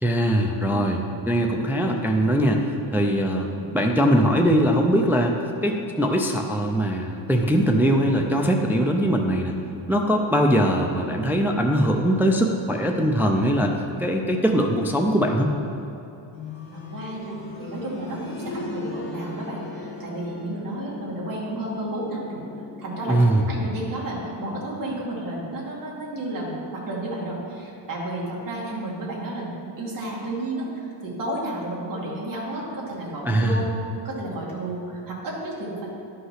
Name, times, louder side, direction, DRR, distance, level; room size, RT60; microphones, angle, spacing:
voice 1, 0.0-3.5 3.7-5.3 5.6-9.6 9.9-15.5 23.1-23.4 33.3-33.6, equal, 5° right, 2 dB, 0.4 m, -21 dB
sound 1, 16.3-27.1 28.5-28.6, left 3 dB, 45° left, 2.3 m, -39 dB
voice 2, 16.7-22.4 22.8-33.7 34.0-35.9, right 1 dB, 40° right, -5 dB, 2.3 m, -32 dB
11.0 x 5.6 x 5.8 m, 2.9 s
wide cardioid pair, 175°, 49 cm